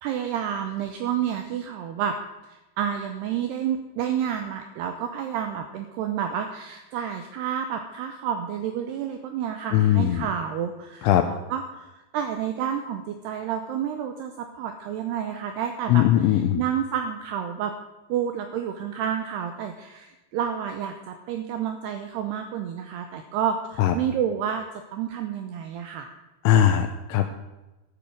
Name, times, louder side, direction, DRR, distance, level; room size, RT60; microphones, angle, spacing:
voice 1, 0.0-2.2 2.5-17.7 18.1-24.6 24.9-26.1, right 8 dB, 85° right, 6 dB, 2.3 m, -30 dB
voice 2, 9.7-10.3 11.0-11.2 15.9-16.6 23.8-23.9 26.4-27.3, left 11 dB, 85° left, 6 dB, 3.1 m, -19 dB
12.0 x 8.7 x 6.4 m, 1.1 s
omnidirectional pair, 5.6 m